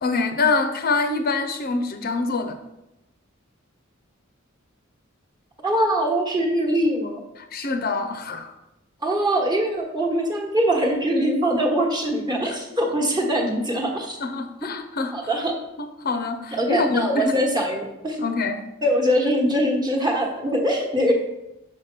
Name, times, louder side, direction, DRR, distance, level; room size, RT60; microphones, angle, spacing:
voice 1, 0.0-2.6 7.4-8.5 12.4-12.6 14.2-15.1 15.8-17.4 18.2-18.6, left 3 dB, 45° left, 7 dB, 0.6 m, -25 dB
voice 2, 5.6-7.2 9.0-14.2 15.1-15.5 16.5-18.2 18.8-21.1, equal, 20° right, 0 dB, 1.2 m, -22 dB
5.9 x 5.0 x 6.0 m, 0.92 s
head